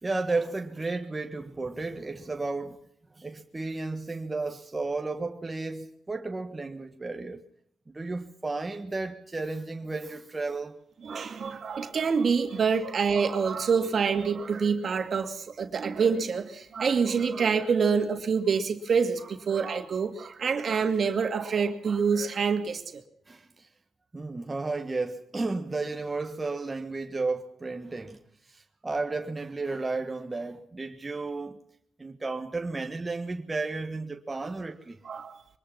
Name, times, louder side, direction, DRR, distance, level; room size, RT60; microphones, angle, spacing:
voice 1, 0.0-2.8 3.2-7.4 7.9-10.8 23.3-23.7 24.1-31.6 32.0-35.0, right 3 dB, 25° right, 1.5 m, -33 dB
voice 2, 11.0-23.0 35.0-35.4, right 5 dB, 55° right, 2.4 m, -26 dB
23.5 x 19.5 x 5.9 m
cardioid pair, 80°, 0 cm